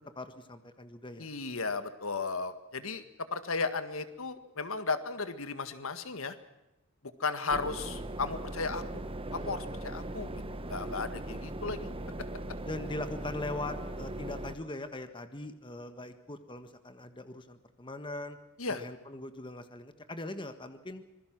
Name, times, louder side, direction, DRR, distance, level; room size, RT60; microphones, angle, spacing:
voice 1, 0.1-1.3 12.6-18.4 18.7-21.0, left 2 dB, 25° left, 9 dB, 1.6 m, -41 dB
voice 2, 1.2-3.0 3.3-6.4 7.2-9.0 9.3-10.3 10.7-11.9 18.6-18.8, left 4 dB, 70° left, 11 dB, 1.8 m, -35 dB
sound 1, 7.5-14.6, right 1 dB, 25° right, 1.2 m, -39 dB
26.5 x 22.0 x 6.1 m, 0.95 s
head